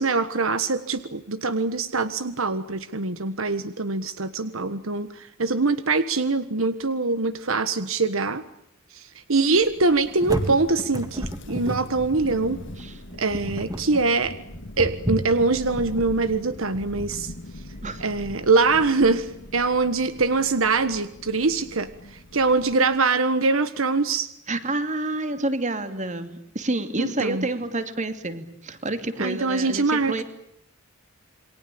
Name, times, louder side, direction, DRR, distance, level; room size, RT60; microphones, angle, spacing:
voice 1, 0.0-8.4 8.9-12.6 13.2-14.3 14.8-17.3 18.0-24.3 27.0-27.5 29.2-30.2, right 3 dB, 70° right, 12 dB, 1.5 m, -23 dB
Thunder, 9.4-23.1, left 1 dB, 60° left, 1.8 m, -43 dB
sound 1, 9.9-17.1, equal, 20° right, 3.2 m, -32 dB
voice 2, 24.5-30.2, right 2 dB, 35° right, 9 dB, 2.8 m, -28 dB
28.5 x 23.5 x 8.7 m, 0.74 s
head